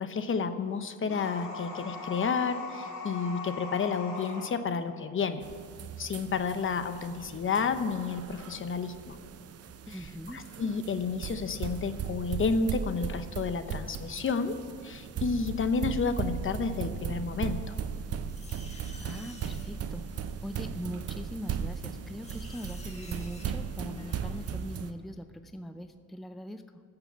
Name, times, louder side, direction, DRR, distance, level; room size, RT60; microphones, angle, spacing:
voice 1, 0.0-5.4 6.0-9.2 9.9-10.0 10.3-14.6 14.8-17.7, left 5 dB, 45° left, 10 dB, 0.9 m, -31 dB
sound 1, 1.0-4.5, left 3 dB, 80° left, 3.5 m, -40 dB
sound 2, 5.4-24.9, right 7 dB, 55° right, 0.7 m, -37 dB
voice 2, 9.9-10.5 19.0-20.1 20.4-26.8, equal, ahead, 9 dB, 0.5 m, -41 dB
sound 3, 17.7-24.9, left 1 dB, 20° left, 1.8 m, -53 dB
14.0 x 6.8 x 7.0 m, 2.4 s
cardioid pair, 90°, 30 cm